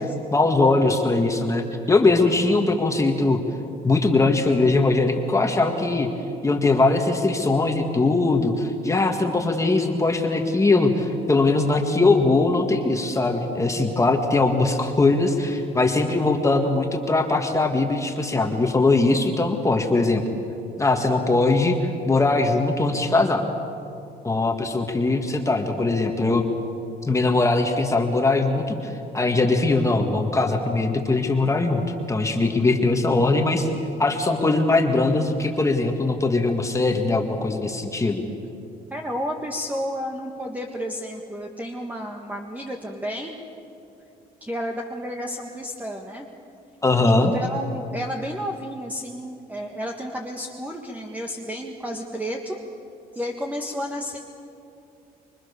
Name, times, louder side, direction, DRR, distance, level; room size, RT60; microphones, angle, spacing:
voice 1, 0.3-3.4 3.8-6.1 6.4-20.2 20.8-21.8 22.1-23.4 24.2-26.4 27.0-31.8 32.1-33.7 34.0-38.2 46.8-47.3, left 3 dB, 20° left, 4 dB, 1.9 m, -21 dB
voice 2, 38.9-43.4 44.4-46.3 47.0-52.6 53.1-54.2, equal, 10° right, 2 dB, 1.7 m, -31 dB
26.0 x 23.5 x 7.0 m, 2.7 s
cardioid pair, 110°, 17 cm